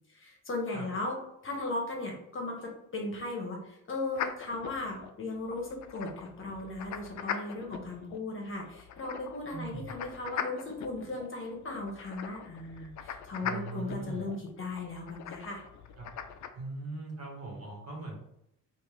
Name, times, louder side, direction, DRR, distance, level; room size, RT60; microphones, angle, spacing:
voice 1, 0.1-1.2 1.4-15.6, left 2 dB, 40° left, 0 dB, 1.0 m, -37 dB
sound 1, 4.1-16.5, left 8 dB, 65° left, 0.4 m, -41 dB
voice 2, 9.5-9.9 13.4-14.3 15.9-16.1 16.5-18.2, right 3 dB, 50° right, -2 dB, 1.4 m, -40 dB
3.4 x 2.6 x 3.1 m, 0.80 s
cardioid pair, 85°, 32 cm